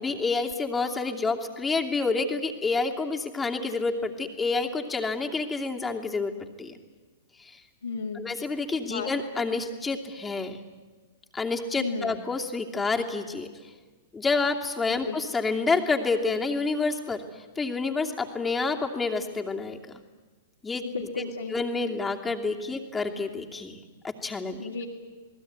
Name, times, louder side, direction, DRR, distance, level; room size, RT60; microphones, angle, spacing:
voice 1, 0.0-6.7 7.4-7.6 8.1-10.6 11.3-13.7 14.1-19.8 20.6-21.1 21.5-24.6, left 3 dB, 10° left, 2 dB, 2.7 m, -29 dB
voice 2, 7.8-8.3 8.9-9.1 11.8-12.2 15.0-15.2 20.8-21.6 24.6-24.8, left 4 dB, 85° left, -3 dB, 2.7 m, -33 dB
28.0 x 19.5 x 9.5 m, 1.4 s
figure-of-eight pair, 105°, 0 cm